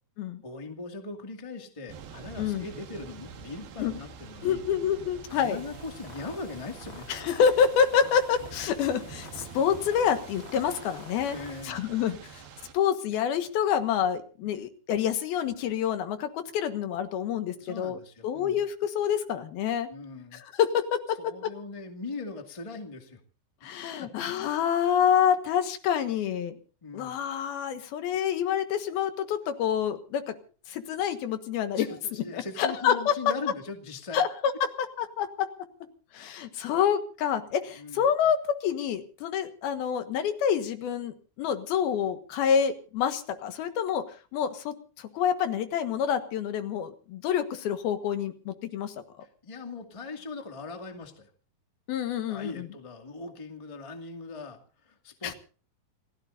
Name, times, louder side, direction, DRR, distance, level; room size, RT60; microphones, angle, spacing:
voice 1, 0.4-4.6 5.3-7.1 11.3-11.8 12.0-12.1 17.6-18.6 19.9-20.4 21.2-23.2 24.0-24.3 26.8-27.2 31.7-34.2 37.8-38.0 49.2-51.3 52.3-55.3, left 3 dB, 15° left, 4 dB, 1.3 m, -40 dB
Thunder / Rain, 1.9-12.7, right 6 dB, 80° right, 3.7 m, -46 dB
voice 2, 4.4-5.6 7.1-11.4 11.6-12.4 12.7-18.0 18.2-19.9 20.3-21.5 23.6-26.5 26.9-30.3 30.7-31.9 32.3-33.1 34.1-34.5 35.0-35.5 36.1-44.0 44.3-48.9 51.9-52.7 55.2-55.3, left 8 dB, 80° left, 8 dB, 3.3 m, -27 dB
sound 1, 5.3-11.6, left 4 dB, 40° left, 2.6 m, -49 dB
28.5 x 16.5 x 2.6 m, 0.38 s
omnidirectional pair, 4.3 m